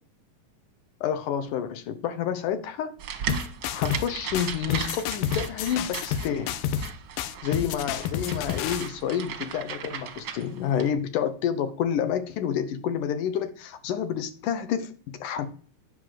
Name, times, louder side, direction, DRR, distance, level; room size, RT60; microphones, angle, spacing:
voice 1, 1.0-2.9 3.7-6.5 7.4-15.5, left 8 dB, 70° left, 2.3 m, -29 dB
sound 1, 3.0-10.9, right 8 dB, 65° right, 1.3 m, -37 dB
sound 2, 3.3-4.1 4.3-6.9 7.2-8.9, left 9 dB, 90° left, 2.5 m, -30 dB
9.8 x 5.8 x 7.7 m
omnidirectional pair, 4.0 m